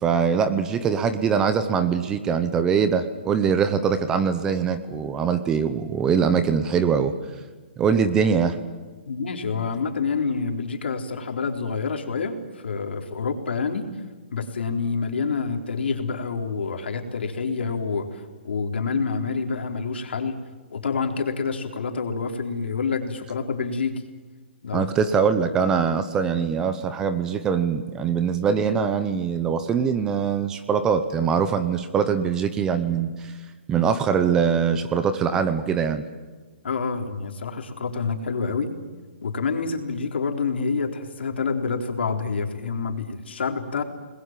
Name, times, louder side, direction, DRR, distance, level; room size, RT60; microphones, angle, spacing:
voice 1, 0.0-7.1 7.8-8.6 24.7-33.3 33.7-36.0, right 6 dB, 10° right, 11 dB, 0.8 m, -22 dB
voice 2, 9.1-13.9 14.3-20.4 20.7-24.0 24.6-24.9 36.6-38.7 39.2-43.8, left 5 dB, 70° left, 5 dB, 3.9 m, -27 dB
29.5 x 21.0 x 7.5 m, 1.3 s
hypercardioid pair, 175°, 6 cm